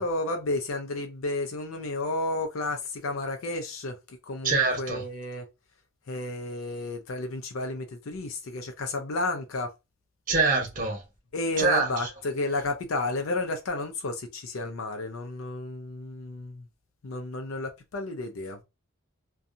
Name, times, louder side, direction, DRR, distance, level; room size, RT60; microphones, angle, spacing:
voice 1, 0.0-5.5 6.1-9.7 11.3-16.7 17.0-18.6, left 2 dB, 75° left, 0.5 m, -32 dB
voice 2, 4.4-5.0 10.3-11.0 11.6-11.9, right 4 dB, 40° right, 1.0 m, -24 dB
2.7 x 2.3 x 2.5 m
head